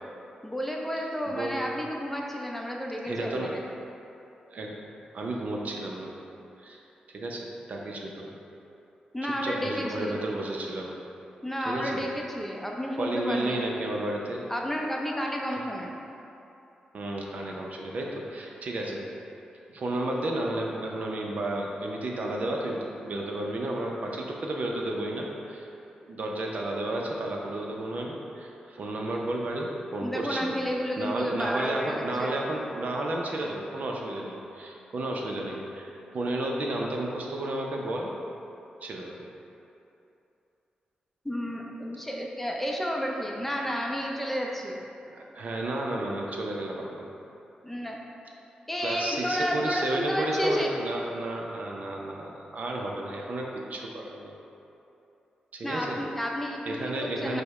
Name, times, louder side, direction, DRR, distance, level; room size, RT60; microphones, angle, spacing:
voice 1, 0.4-3.6 9.1-10.2 11.4-13.7 14.5-15.9 30.0-32.3 41.2-44.8 47.6-48.0 48.7-50.7 55.6-57.4, equal, 5° left, -1 dB, 0.6 m, -31 dB
voice 2, 1.3-1.6 3.0-3.6 4.5-4.8 5.1-6.1 6.6-6.8 7.1-8.3 9.4-10.9 11.7-12.0 13.0-14.4 16.9-19.0 19.7-25.7 26.0-30.5 31.0-38.1 38.8-39.2 45.1-47.1 48.8-54.4 55.5-56.0 56.7-57.4, right 1 dB, 60° right, -1 dB, 0.5 m, -32 dB
5.0 x 2.1 x 4.8 m, 2.8 s
cardioid pair, 65°, 3 cm